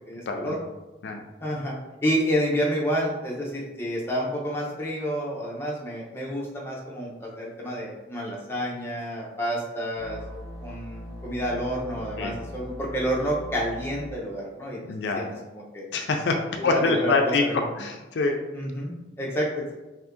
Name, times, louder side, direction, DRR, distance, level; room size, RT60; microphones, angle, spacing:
voice 1, 0.1-0.6 1.4-14.8 15.1-15.3 15.5-15.9 16.6-17.7 18.5-19.7, equal, 15° left, -4 dB, 0.6 m, -29 dB
sound 1, 10.0-14.1, left 1 dB, 30° right, 0.9 m, -40 dB
voice 2, 14.8-15.2 15.9-17.4 17.8-18.4, left 3 dB, 70° left, 4 dB, 0.3 m, -25 dB
2.7 x 2.5 x 3.5 m, 1.1 s
head